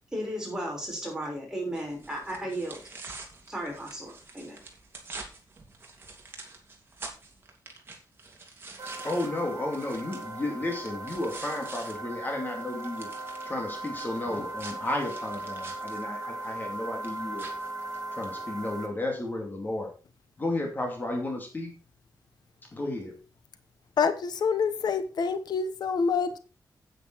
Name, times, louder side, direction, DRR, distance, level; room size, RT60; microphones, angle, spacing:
voice 1, 0.1-2.8 3.5-4.6, right 1 dB, 10° right, -2 dB, 6.1 m, -35 dB
sound 1, 1.7-11.9 12.3-18.3, right 3 dB, 35° right, 2.9 m, -46 dB
sound 2, 8.8-18.9, right 2 dB, 60° right, 3.4 m, -38 dB
voice 2, 9.0-13.1 13.5-17.5 18.1-19.9 20.4-21.7 22.7-23.1, left 2 dB, 25° left, 2 dB, 2.5 m, -33 dB
voice 3, 24.0-26.4, left 5 dB, 75° left, 10 dB, 1.0 m, -27 dB
9.5 x 9.2 x 4.6 m, 0.34 s
wide cardioid pair, 150°, 7 cm